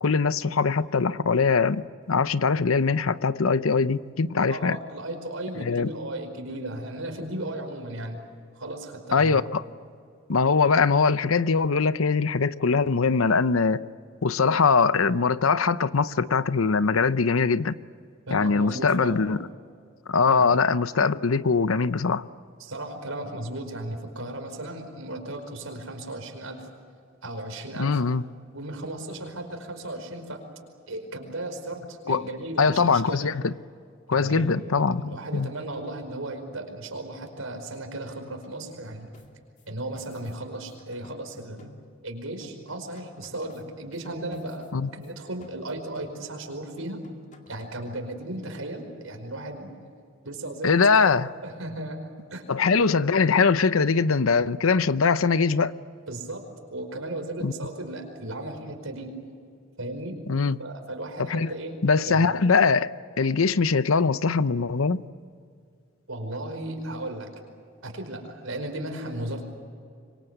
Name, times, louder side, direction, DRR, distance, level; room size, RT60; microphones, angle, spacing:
voice 1, 0.0-4.8 5.6-5.9 9.1-9.6 10.3-13.8 14.2-17.8 18.3-19.5 20.1-22.2 27.8-28.2 32.1-32.2 32.6-33.5 34.1-35.5 44.7-44.9 50.6-51.3 52.5-55.7 57.4-57.5 60.3-60.6 61.2-61.5 61.8-62.9 63.2-65.0, left 5 dB, 90° left, 0.8 m, -22 dB
voice 2, 4.5-8.2 8.5-9.4 18.3-19.2 20.2-21.1 22.6-26.7 27.2-28.0 28.5-30.4 30.9-33.3 34.1-39.1 39.7-41.7 42.0-47.0 47.5-49.7 50.2-51.1 51.4-52.5 52.7-52.9 56.1-56.4 56.7-59.1 59.8-60.2 60.6-61.8 62.0-62.3 66.1-67.3 67.8-69.4, right 1 dB, 85° right, 5.1 m, -35 dB
sound 1, 39.1-42.1 42.4-45.1 45.4-46.5 46.8-47.9, left 2 dB, 40° left, 2.3 m, -53 dB
26.5 x 24.0 x 8.2 m
head